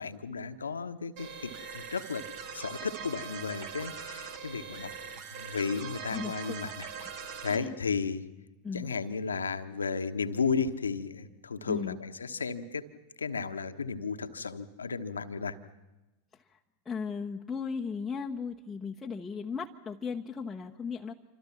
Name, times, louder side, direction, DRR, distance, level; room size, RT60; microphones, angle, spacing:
voice 1, 0.0-2.3 2.5-4.9 5.3-6.7 7.4-8.2 8.7-12.9 13.2-15.6, left 5 dB, 75° left, 9 dB, 1.2 m, -34 dB
sound 1, 1.2-7.6, right 6 dB, 45° right, 2.1 m, -42 dB
voice 2, 6.1-7.0 7.5-7.7 8.6-9.0 11.7-12.0 16.3-16.6 16.8-21.1, left 5 dB, 10° left, -1 dB, 1.1 m, -37 dB
28.0 x 25.5 x 6.0 m, 1.1 s
figure-of-eight pair, 90°, 0 cm